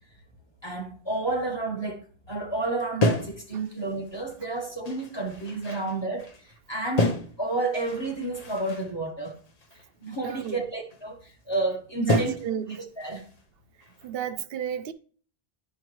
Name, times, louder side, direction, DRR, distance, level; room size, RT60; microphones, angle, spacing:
voice 1, 0.6-6.3 6.7-9.3 10.0-11.2 11.5-12.4 12.7-13.2, right 2 dB, 25° left, 1.2 m, -31 dB
sound 1, 3.0-4.4 4.9-6.6 7.0-8.9 9.2-10.5 10.9-11.0 11.5-11.7 12.1-12.6 13.0-13.4 13.8-14.3, left 2 dB, 40° left, 0.8 m, -31 dB
voice 2, 10.2-10.6 12.0-12.6 14.0-14.9, right 9 dB, 65° right, 0.8 m, -31 dB
10.5 x 4.7 x 3.1 m
omnidirectional pair, 1.1 m